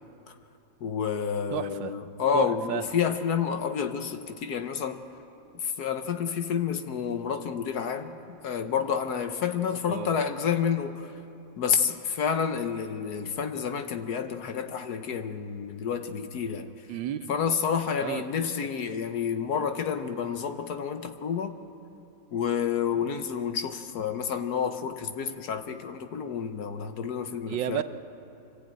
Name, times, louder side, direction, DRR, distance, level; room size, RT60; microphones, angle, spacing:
voice 1, 0.8-5.1 5.5-8.2 8.4-11.1 11.6-16.9 17.3-21.6 22.3-27.8, left 7 dB, 60° left, 8 dB, 1.4 m, -29 dB
voice 2, 1.5-1.9 2.3-2.8 9.9-10.2 16.9-17.3 18.0-18.2 27.5-27.8, right 11 dB, 80° right, 11 dB, 1.5 m, -31 dB
24.5 x 15.0 x 8.9 m, 2.9 s
omnidirectional pair, 2.0 m